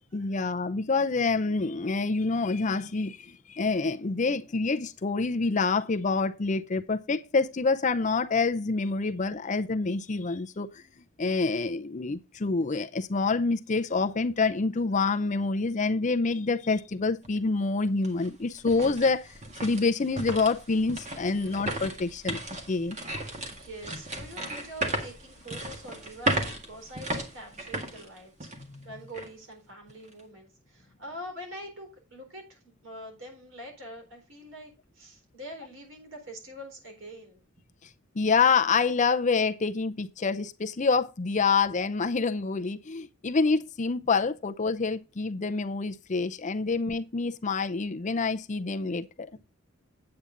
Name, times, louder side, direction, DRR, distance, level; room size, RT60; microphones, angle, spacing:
voice 1, 0.1-10.8 11.2-19.3 19.6-22.4 22.7-23.0 37.8-37.9 38.1-49.4, left 4 dB, 35° left, 0.5 m, -27 dB
sound 1, 17.2-17.3 17.8-28.8 29.1-29.3 29.9-30.2, right 1 dB, 35° right, 1.9 m, -35 dB
voice 2, 23.4-37.4, equal, 60° right, 4.0 m, -44 dB
8.8 x 8.4 x 3.8 m
head